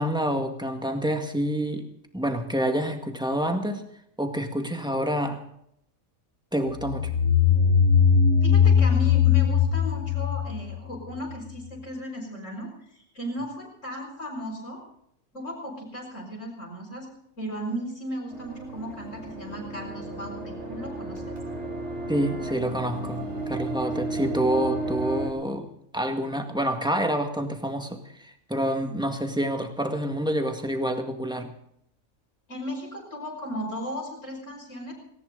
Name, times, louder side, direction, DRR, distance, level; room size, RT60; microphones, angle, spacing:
voice 1, 0.0-1.9 2.1-3.8 4.2-5.4 6.5-7.1 22.1-25.7 25.9-31.5, equal, 5° right, 5 dB, 1.9 m, -27 dB
sound 1, 6.8-11.3, left 7 dB, 80° left, 1.5 m, -20 dB
voice 2, 8.4-14.8 15.3-17.1 17.4-21.4 32.5-34.9, equal, 60° left, -4 dB, 5.6 m, -36 dB
sound 2, 18.3-25.3, right 2 dB, 55° right, 4.7 m, -33 dB
18.5 x 18.5 x 4.0 m, 0.71 s
omnidirectional pair, 1.5 m